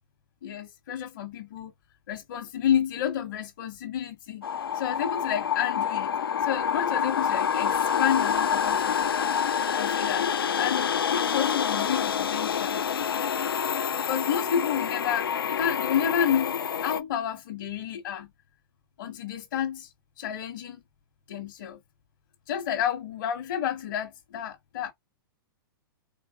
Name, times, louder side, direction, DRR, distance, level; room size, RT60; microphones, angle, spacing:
voice 1, 0.4-1.7 2.1-4.5 4.7-6.1 6.4-9.1 9.7-10.3 10.6-12.8 13.9-18.3 19.0-19.9 20.2-20.8 21.3-21.8 22.5-24.9, left 9 dB, 60° left, 1.2 m, -30 dB
sound 1, 4.4-17.0, left 8 dB, 85° left, 0.5 m, -27 dB
4.0 x 3.2 x 2.3 m
hypercardioid pair, 115°, 12 cm